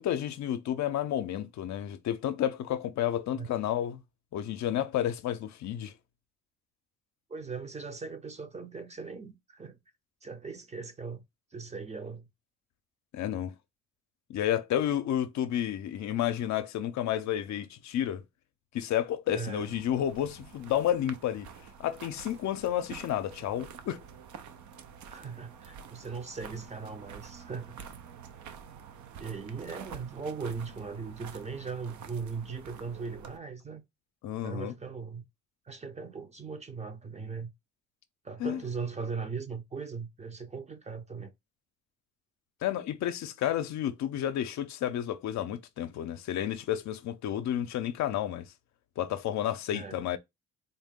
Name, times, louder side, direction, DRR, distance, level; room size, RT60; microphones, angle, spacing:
voice 1, 0.0-4.0 4.3-5.9 13.1-13.5 14.3-18.2 18.7-21.5 21.8-24.0 34.2-34.7 38.4-38.6 42.6-48.5 49.0-50.2, left 11 dB, 65° left, 0.5 m, -31 dB
voice 2, 7.3-9.8 10.2-11.2 11.5-12.2 19.3-19.7 25.1-27.8 29.2-33.8 34.4-35.2 35.7-37.5 38.2-41.3 49.7-50.0, right 5 dB, 20° right, 0.6 m, -39 dB
sound 1, 19.5-33.4, right 7 dB, 70° right, 0.6 m, -48 dB
4.0 x 2.1 x 3.6 m
cardioid pair, 90°, 30 cm